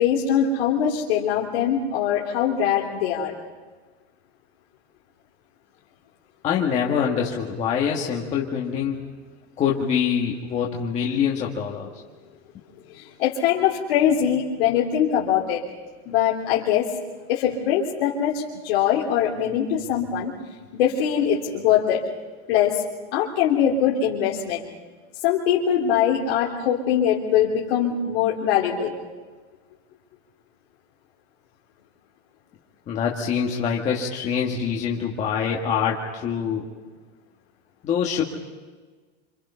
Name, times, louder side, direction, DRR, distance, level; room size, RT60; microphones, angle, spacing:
voice 1, 0.0-3.3 12.9-15.6 16.0-16.9 17.3-20.3 20.7-22.0 22.5-22.8 23.1-24.6 25.2-28.9, left 9 dB, 60° left, -4 dB, 3.3 m, -22 dB
voice 2, 6.4-9.0 9.6-11.9 32.9-36.7 37.8-38.2, left 7 dB, 20° left, -2 dB, 1.9 m, -25 dB
27.5 x 27.0 x 5.7 m, 1.4 s
supercardioid pair, 170°, 33 cm